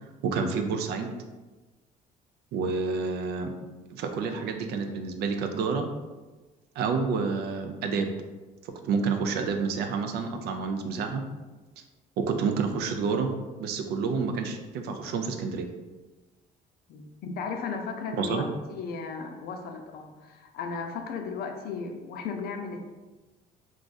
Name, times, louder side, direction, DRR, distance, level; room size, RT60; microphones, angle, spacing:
voice 1, 0.0-1.1 2.5-3.5 3.9-5.9 6.8-8.1 8.6-11.2 12.2-13.3 13.6-15.7 18.2-18.5, right 5 dB, 75° right, 5 dB, 0.4 m, -29 dB
voice 2, 16.9-18.4 18.7-22.9, left 5 dB, 65° left, 4 dB, 0.5 m, -35 dB
2.5 x 2.3 x 3.9 m, 1.2 s
cardioid pair, 110°, 17 cm